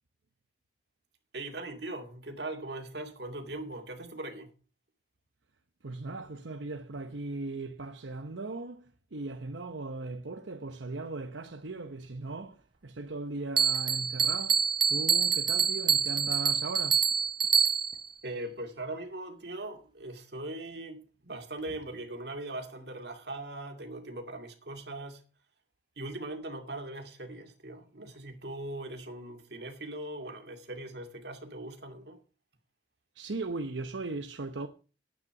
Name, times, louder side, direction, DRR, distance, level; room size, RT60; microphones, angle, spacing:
voice 1, 1.3-4.5 18.2-25.2 26.0-32.2, right 2 dB, 65° right, 2.4 m, -40 dB
voice 2, 5.8-17.0 33.2-34.7, right 3 dB, 90° right, 0.9 m, -38 dB
Bell, 13.6-18.1, right 7 dB, 25° right, 0.5 m, -26 dB
10.5 x 9.0 x 5.9 m
head